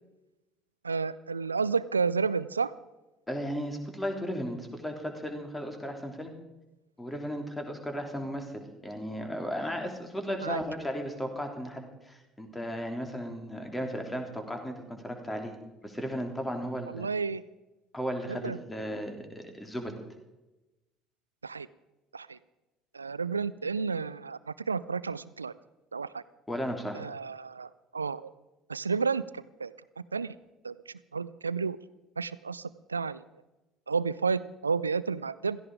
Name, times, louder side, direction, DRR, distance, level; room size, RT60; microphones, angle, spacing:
voice 1, 0.8-2.7 10.4-10.6 16.9-17.4 18.3-18.6 21.4-21.7 22.1-22.4 22.9-25.5 25.9-26.2 26.9-28.3 28.7-29.7 30.1-30.4 30.6-31.8 32.2-33.2 33.9-35.6, right 5 dB, 85° right, 18 dB, 0.4 m, -31 dB
voice 2, 3.3-6.3 7.0-15.5 15.8-17.1 17.9-19.9 26.5-27.0, equal, 10° left, 4 dB, 3.5 m, -35 dB
16.5 x 15.0 x 5.0 m, 1.0 s
figure-of-eight pair, 55°, 0 cm